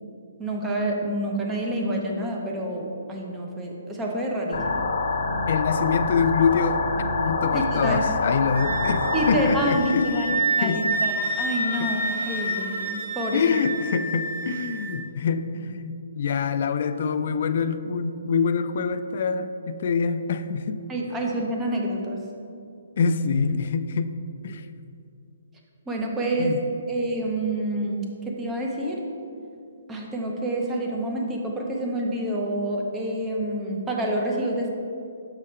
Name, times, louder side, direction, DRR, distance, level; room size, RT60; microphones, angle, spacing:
voice 1, 0.4-4.8 7.5-8.0 9.1-10.3 10.6-13.4 20.9-22.2 25.9-26.6 26.9-29.0 29.9-34.7, right 1 dB, 10° right, -1 dB, 0.7 m, -28 dB
sound 1, 4.5-9.5, left 3 dB, 70° left, 0.9 m, -26 dB
voice 2, 5.5-6.8 7.2-11.0 11.8-11.9 13.3-20.8 23.0-24.2 24.4-24.7 26.4-26.6, left 5 dB, 50° left, 11 dB, 0.3 m, -25 dB
Wind instrument woodwind instrument, 8.5-14.9, right 2 dB, 60° right, 1.5 m, -29 dB
6.6 x 4.9 x 4.3 m, 2.6 s
hypercardioid pair, 165°, 0 cm